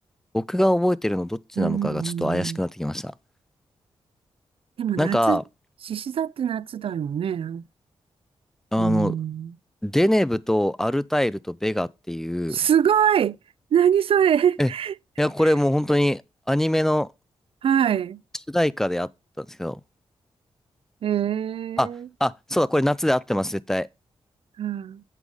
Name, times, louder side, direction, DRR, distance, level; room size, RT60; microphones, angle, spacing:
voice 1, 0.3-3.1 5.0-5.4 8.7-9.2 9.8-12.6 14.6-14.7 15.2-16.2 16.5-17.1 18.5-19.1 19.4-19.8 21.8-21.9 22.2-23.9, left 1 dB, 5° left, 0.4 m, -23 dB
voice 2, 1.6-2.6 4.8-5.4 5.8-7.6 8.8-9.5 12.5-13.4 13.7-14.9 17.6-18.2 21.0-22.1 24.6-25.0, right 9 dB, 65° right, 0.4 m, -23 dB
8.2 x 4.8 x 5.3 m
cardioid pair, 85°, 10 cm